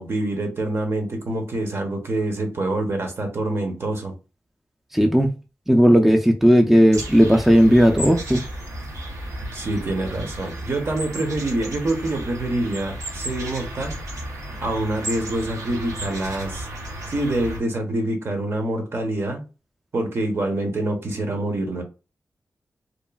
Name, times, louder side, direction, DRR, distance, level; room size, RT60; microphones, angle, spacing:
voice 1, 0.0-4.1 9.5-14.0 14.6-16.7 17.1-19.5 19.9-21.8, right 1 dB, 55° right, 0.8 m, -26 dB
voice 2, 4.9-5.3 5.7-8.4, equal, 5° right, 0.4 m, -15 dB
sound 1, 6.9-17.6, right 1 dB, 85° right, 0.8 m, -33 dB
2.9 x 2.4 x 2.3 m
wide cardioid pair, 80°, 5 cm